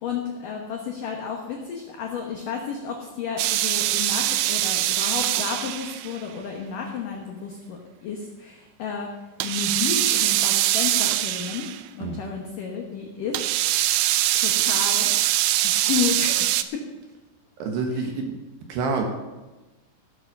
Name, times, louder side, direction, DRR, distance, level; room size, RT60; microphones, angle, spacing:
voice 1, 0.0-9.1 9.4-13.4 13.7-13.8 14.3-15.1 15.6-16.8 17.9-18.1, left 6 dB, 85° left, 1 dB, 1.9 m, -32 dB
sound 1, 3.4-6.2 9.4-11.8 13.3-16.6, right 14 dB, 90° right, 3.3 m, -23 dB
voice 2, 17.6-18.4 18.7-19.0, right 4 dB, 70° right, 3 dB, 3.0 m, -27 dB
15.5 x 7.8 x 6.6 m, 1.2 s
omnidirectional pair, 5.8 m